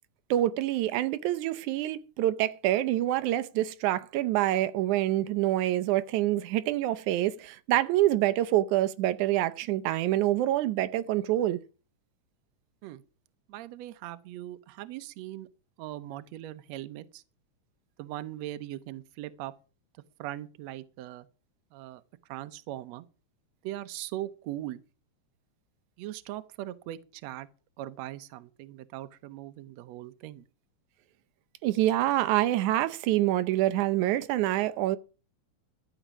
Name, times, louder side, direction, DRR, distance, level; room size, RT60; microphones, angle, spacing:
voice 1, 0.3-11.6 31.6-35.0, right 14 dB, 90° right, 2.2 m, -26 dB
voice 2, 13.5-15.5 15.8-17.2 18.0-19.5 20.2-21.3 21.7-22.0 22.3-23.0 23.6-24.8 26.0-27.5 27.8-30.4, right 14 dB, 75° right, 1.9 m, -40 dB
13.0 x 7.9 x 6.1 m
omnidirectional pair, 3.4 m